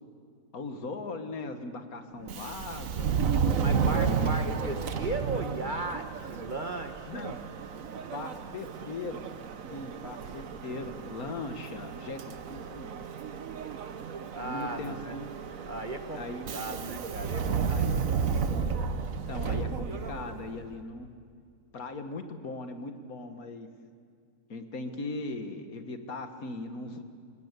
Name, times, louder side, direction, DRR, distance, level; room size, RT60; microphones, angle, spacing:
voice 1, 0.5-3.2 3.9-4.0 4.3-4.5 7.1-7.4 8.1-9.2 9.7-12.2 12.5-13.0 14.4-15.3 16.1-16.5 17.7-18.0 19.3-21.1 21.7-23.7 24.5-27.0, left 3 dB, 65° left, 7 dB, 1.9 m, -39 dB
Subway metro underground, 2.2-20.6, right 6 dB, 60° right, 1.4 m, -32 dB
voice 2, 3.6-7.3 14.3-15.2 15.7-16.2 16.5-18.0, right 2 dB, 35° right, 6 dB, 1.4 m, -36 dB
28.5 x 19.0 x 8.2 m, 2.2 s
omnidirectional pair, 1.6 m